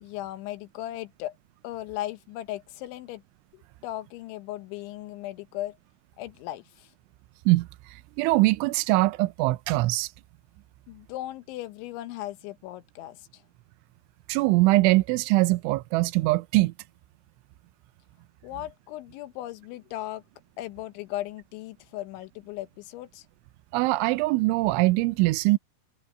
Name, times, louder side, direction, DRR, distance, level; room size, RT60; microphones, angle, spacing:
voice 1, 0.0-1.4 1.6-3.2 3.5-5.8 6.2-6.9 10.9-13.4 18.4-20.2 20.6-23.3, left 14 dB, 80° left, 3.3 m, -37 dB
voice 2, 8.2-10.1 14.3-16.7 23.7-25.6, right 20 dB, 85° right, 3.1 m, -22 dB
omnidirectional pair, 5.4 m